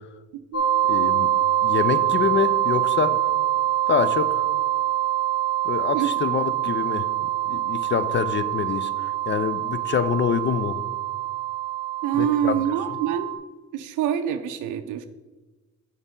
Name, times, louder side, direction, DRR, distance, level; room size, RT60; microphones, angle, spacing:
sound 1, 0.5-13.3, right 12 dB, 55° left, 1.1 m, -25 dB
voice 1, 0.9-1.3 1.6-3.2 3.9-4.5 5.6-7.1 7.5-10.8 12.2-12.6, left 7 dB, 40° left, 13 dB, 0.5 m, -26 dB
voice 2, 12.0-13.3 13.7-15.1, right 10 dB, 90° right, 7 dB, 0.6 m, -26 dB
7.2 x 6.4 x 3.8 m, 1.2 s
cardioid pair, 90°, 30 cm